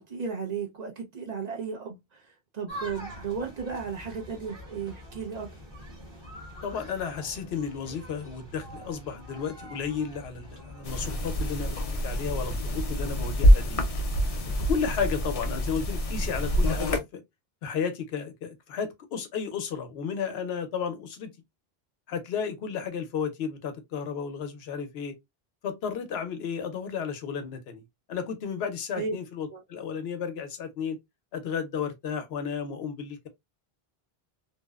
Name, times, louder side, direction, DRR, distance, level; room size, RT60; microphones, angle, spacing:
voice 1, 0.0-2.2 2.5-5.5 28.9-29.2 29.5-29.6, right 5 dB, 50° right, 0.7 m, -34 dB
sound 1, 2.7-11.8, equal, 30° right, 0.9 m, -45 dB
voice 2, 6.6-13.8 14.6-17.2 17.6-21.3 22.1-25.1 25.6-27.8 28.1-31.0 31.3-33.3, left 6 dB, 85° left, 0.9 m, -33 dB
sound 2, 10.8-17.0, equal, 50° left, 0.5 m, -25 dB
2.7 x 2.0 x 2.2 m
omnidirectional pair, 1.0 m